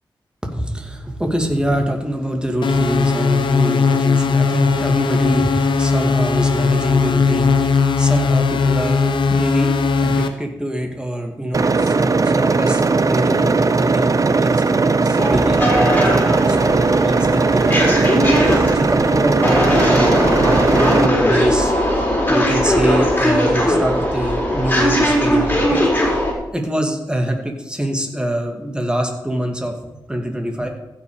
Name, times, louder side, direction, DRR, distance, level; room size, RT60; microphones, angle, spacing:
voice 1, 0.4-9.7 10.0-12.8 13.1-21.7 22.3-25.8 26.5-29.7 30.1-30.7, equal, 10° right, 3 dB, 2.3 m, -24 dB
sound 1, 2.6-10.3, left 4 dB, 80° left, 0.9 m, -18 dB
sound 2, 11.5-21.1, right 4 dB, 45° right, 0.7 m, -17 dB
sound 3, 15.2-26.3, equal, 20° left, 4.0 m, -19 dB
15.0 x 6.2 x 5.0 m, 0.89 s
cardioid pair, 65°, 8 cm